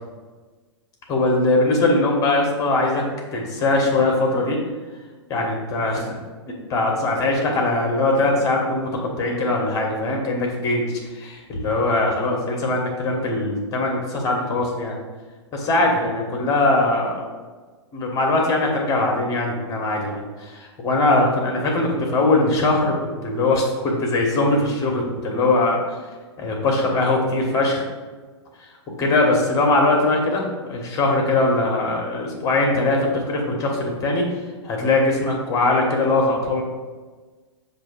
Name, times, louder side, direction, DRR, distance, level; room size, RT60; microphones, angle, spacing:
voice 1, 1.1-3.0 3.3-4.6 5.3-6.2 6.5-8.9 9.2-14.9 15.5-17.2 17.9-25.8 26.4-27.8 29.0-34.3 34.6-36.6, left 2 dB, 25° left, 0 dB, 1.4 m, -21 dB
7.1 x 2.7 x 5.1 m, 1.3 s
figure-of-eight pair, 110°, 15 cm